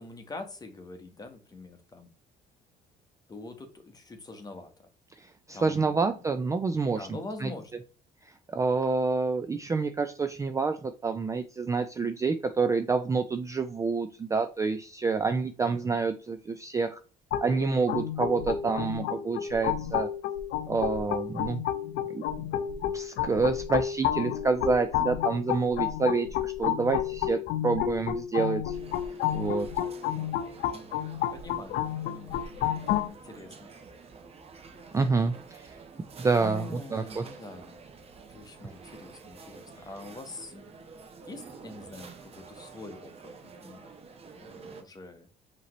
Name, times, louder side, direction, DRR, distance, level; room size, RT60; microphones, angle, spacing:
voice 1, 0.0-2.1 3.3-4.7 5.5-6.0 6.9-7.7 15.8-16.0 30.7-31.0 31.3-31.8 32.0-33.7 36.4-37.8 38.3-40.9 41.3-43.1 43.6-43.9 44.3-45.3, left 3 dB, 20° left, 6 dB, 1.0 m, -44 dB
voice 2, 5.2-7.1 7.4-7.5 8.5-17.0 17.4-20.1 20.7-21.6 22.1-22.3 22.9-28.8 29.3-29.7 34.9-35.6 36.2-37.2 38.6-38.7, right 4 dB, 20° right, 9 dB, 0.3 m, -28 dB
sound 1, 17.3-33.1, left 11 dB, 85° left, 0.6 m, -31 dB
sound 2, 28.7-44.8, right 5 dB, 35° right, 0.8 m, -49 dB
5.6 x 3.0 x 3.0 m, 0.38 s
cardioid pair, 110°, 17 cm